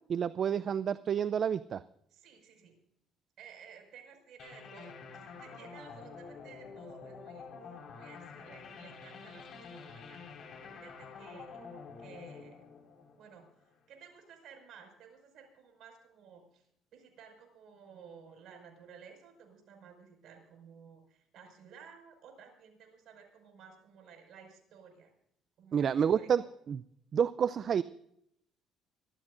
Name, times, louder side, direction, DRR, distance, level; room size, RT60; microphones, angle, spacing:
voice 1, 0.1-1.8 25.7-26.8 27.1-27.8, right 8 dB, 50° right, 16 dB, 0.5 m, -29 dB
voice 2, 2.1-2.8 3.4-7.5 7.9-10.2 10.6-11.6 12.0-12.6 13.2-25.1 25.6-26.5, right 6 dB, 70° right, 4 dB, 5.6 m, -55 dB
sound 1, 4.4-13.7, left 5 dB, 60° left, 4.5 m, -48 dB
25.5 x 14.0 x 2.6 m, 0.74 s
supercardioid pair, 75°, 0 cm